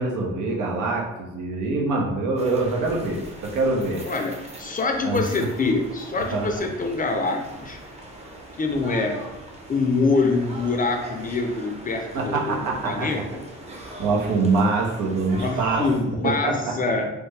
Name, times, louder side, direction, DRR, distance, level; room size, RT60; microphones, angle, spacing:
voice 1, 0.0-4.0 5.0-5.2 6.3-6.7 12.1-13.1 13.7-15.8 16.2-16.7, right 3 dB, 85° right, -1 dB, 0.8 m, -24 dB
sound 1, 2.4-16.0, right 1 dB, 20° right, 0.7 m, -40 dB
voice 2, 4.1-7.8 8.6-9.3 9.7-13.4 15.4-17.1, left 3 dB, 30° left, 3 dB, 0.5 m, -25 dB
3.2 x 2.1 x 3.2 m, 0.99 s
cardioid pair, 90°, 30 cm